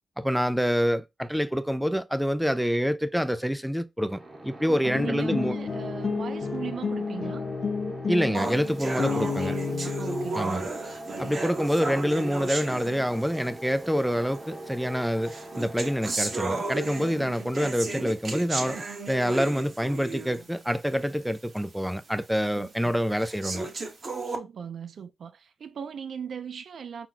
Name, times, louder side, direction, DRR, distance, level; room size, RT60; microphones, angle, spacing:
voice 1, 0.2-5.6 8.1-9.6 10.3-10.7 11.2-23.7, equal, ahead, 0.3 m, -27 dB
sound 1, 4.1-18.8, right 1 dB, 25° right, 1.0 m, -42 dB
voice 2, 4.7-7.5 9.1-10.6 22.5-23.0 24.2-27.1, right 7 dB, 65° right, 0.5 m, -38 dB
sound 2, 4.8-10.3, left 5 dB, 55° left, 0.7 m, -31 dB
sound 3, 8.3-13.5 14.3-14.4 15.2-20.5 20.9-21.0 21.6-21.7 22.3-22.4 23.2-24.4, right 3 dB, 45° right, 1.1 m, -34 dB
5.9 x 2.2 x 3.8 m
wide cardioid pair, 130°, 0 cm